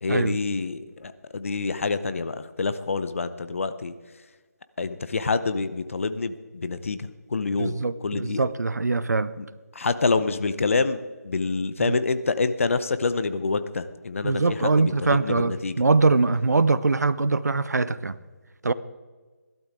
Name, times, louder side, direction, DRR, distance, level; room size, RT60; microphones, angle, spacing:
voice 1, 0.0-3.9 4.8-7.7 8.0-8.4 9.4-9.5 9.8-11.0 11.2-15.7, left 4 dB, 50° left, 12 dB, 0.8 m, -27 dB
voice 2, 7.6-9.3 11.8-12.0 14.2-18.1 18.6-18.7, right 3 dB, 75° right, 16 dB, 0.7 m, -22 dB
17.0 x 12.0 x 3.7 m, 1.4 s
figure-of-eight pair, 165°, 9 cm